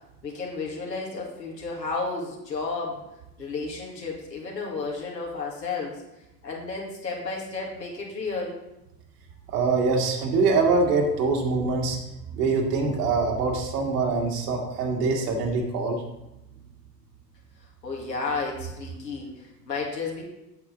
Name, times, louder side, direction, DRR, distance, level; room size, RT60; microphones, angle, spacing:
voice 1, 0.2-3.1 3.4-6.0 6.4-8.6 17.8-20.2, left 4 dB, 85° left, -3 dB, 2.1 m, -32 dB
voice 2, 9.5-12.0 12.3-16.0, right 4 dB, 70° right, 0 dB, 1.9 m, -24 dB
8.1 x 7.5 x 3.9 m, 0.91 s
figure-of-eight pair, 70°, 49 cm